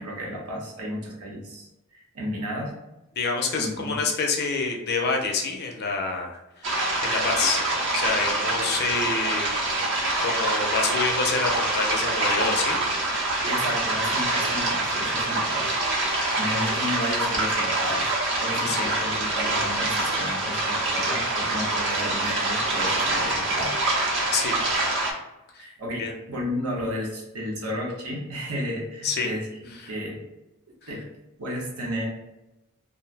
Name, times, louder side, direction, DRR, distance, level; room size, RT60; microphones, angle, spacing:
voice 1, 0.0-2.7 3.5-4.0 13.4-15.7 16.3-18.1 18.4-23.8 25.6-29.5 29.9-30.2 30.9-31.1 31.4-32.0, equal, 85° right, -1 dB, 0.8 m, -33 dB
voice 2, 3.2-7.6 7.9-9.9 10.2-12.8 18.7-18.9 24.3-24.5 25.5-25.6 26.0-26.1 29.0-29.3 29.8-29.9, left 4 dB, 45° left, 1 dB, 0.5 m, -27 dB
sound 1, 6.6-25.1, right 2 dB, 55° right, 0.7 m, -25 dB
2.5 x 2.1 x 3.2 m, 0.95 s
head